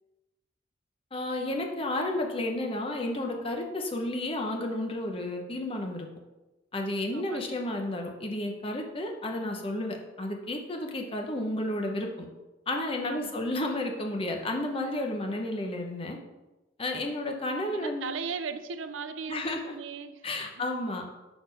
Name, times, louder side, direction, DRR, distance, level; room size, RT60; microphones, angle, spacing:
voice 1, 1.1-6.1 6.7-12.3 12.7-16.2 16.8-18.1 19.3-19.7 20.2-21.1, left 1 dB, 30° left, 2 dB, 0.8 m, -32 dB
voice 2, 7.1-7.6 13.0-13.3 17.7-20.6, right 5 dB, 85° right, 10 dB, 0.5 m, -38 dB
6.0 x 4.2 x 5.3 m, 1.1 s
head